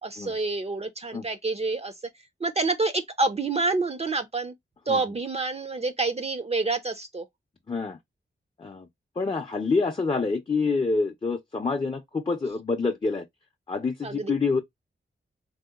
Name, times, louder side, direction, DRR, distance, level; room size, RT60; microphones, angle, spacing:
voice 1, 0.0-1.9 2.4-4.5 4.9-7.2 14.0-14.3, right 3 dB, 30° right, 0.4 m, -27 dB
voice 2, 7.7-8.0 8.6-8.9 9.2-13.3 13.7-14.6, left 4 dB, 25° left, 0.4 m, -27 dB
3.6 x 2.7 x 2.3 m
wide cardioid pair, 90°, 20 cm